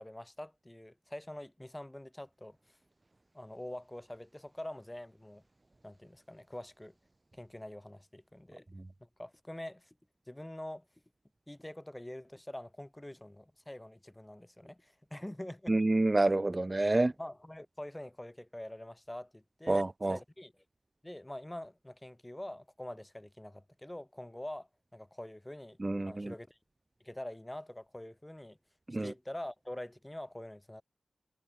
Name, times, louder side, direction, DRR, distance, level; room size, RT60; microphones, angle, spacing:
voice 1, 0.0-2.8 3.3-5.4 5.8-6.9 7.3-8.7 9.0-9.9 10.3-10.9 11.5-15.7 16.9-20.6 21.0-25.8 26.1-26.6 27.0-28.6 29.0-30.8, left 1 dB, 15° left, 3.9 m, -45 dB
voice 2, 15.7-17.1 19.7-20.2 25.8-26.3 28.9-29.1, right 2 dB, 30° right, 0.8 m, -28 dB
wide cardioid pair, 65°, 0 cm